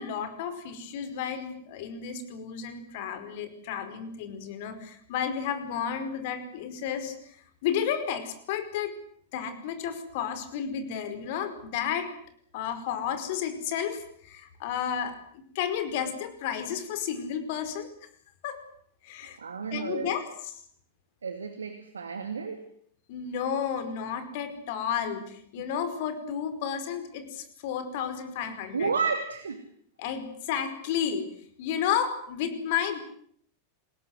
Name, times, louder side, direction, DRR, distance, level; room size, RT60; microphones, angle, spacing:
voice 1, 0.0-7.4 7.6-8.9 9.3-12.1 12.5-15.1 15.5-17.9 18.4-18.6 19.0-19.4 19.7-20.6 23.1-28.9 30.0-31.3 31.6-33.0, left 8 dB, 50° left, 10 dB, 5.1 m, -32 dB
voice 2, 19.4-20.1 21.2-22.6 28.7-29.6, right 5 dB, 70° right, 9 dB, 2.5 m, -31 dB
27.5 x 20.5 x 8.0 m, 0.63 s
figure-of-eight pair, 90°, 0 cm